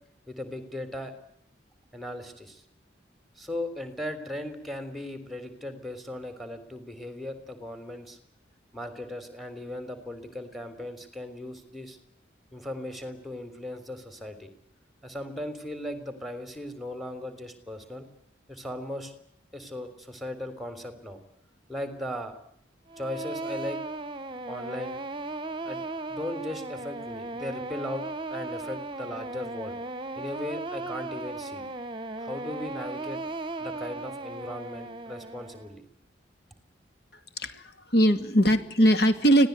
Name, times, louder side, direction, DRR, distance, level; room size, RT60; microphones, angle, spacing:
voice 1, 0.3-1.1 1.9-2.6 3.4-8.2 8.7-12.0 12.5-14.5 15.0-18.1 18.5-19.1 19.5-21.2 21.7-22.3 23.0-23.8 24.5-25.0 25.6-25.8 26.1-28.0 28.3-29.8 30.2-31.6 32.2-33.2 33.6-35.8, left 1 dB, ahead, 10 dB, 3.6 m, -37 dB
sound 1, 22.9-35.7, right 2 dB, 25° right, 1.4 m, -36 dB
voice 2, 37.4-39.5, equal, 55° left, 9 dB, 2.4 m, -21 dB
25.5 x 17.5 x 9.5 m, 0.72 s
head